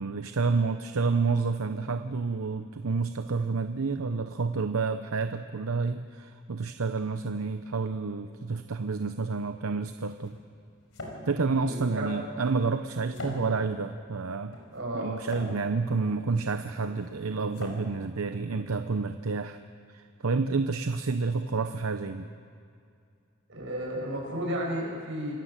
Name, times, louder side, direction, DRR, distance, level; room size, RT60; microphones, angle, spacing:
voice 1, 0.0-10.4 11.3-14.6 14.9-19.6 19.9-22.3, right 4 dB, 85° right, 8 dB, 0.7 m, -29 dB
sound 1, 9.6-19.1, left 1 dB, 70° left, 5.0 m, -45 dB
voice 2, 11.4-12.1 13.1-13.2 14.7-15.1 23.5-25.3, right 1 dB, 60° right, -2 dB, 7.5 m, -33 dB
27.0 x 16.5 x 7.5 m, 2.4 s
head